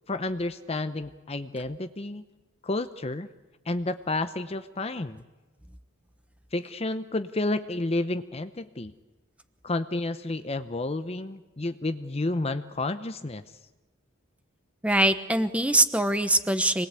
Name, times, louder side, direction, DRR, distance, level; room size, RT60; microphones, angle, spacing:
voice 1, 0.1-2.2 2.6-3.3 3.7-5.2 6.5-8.9 9.6-13.5, left 2 dB, 30° left, 11 dB, 0.7 m, -30 dB
voice 2, 14.8-16.9, right 1 dB, 5° right, 10 dB, 1.0 m, -23 dB
26.0 x 20.0 x 8.3 m, 1.1 s
head